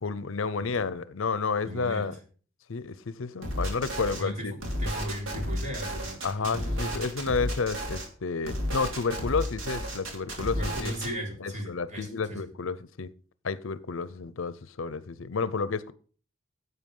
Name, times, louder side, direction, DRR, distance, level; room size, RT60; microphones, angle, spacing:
voice 1, 0.0-2.2 2.7-4.5 6.2-10.9 11.4-13.1 13.4-15.9, left 4 dB, 75° left, 0.6 m, -31 dB
voice 2, 1.6-2.2 4.2-4.5 4.8-7.0 10.6-12.5, equal, 35° right, 3.6 m, -36 dB
sound 1, 3.4-4.2 4.6-8.1 8.4-11.1, equal, 75° right, 2.9 m, -32 dB
10.0 x 8.2 x 5.5 m
head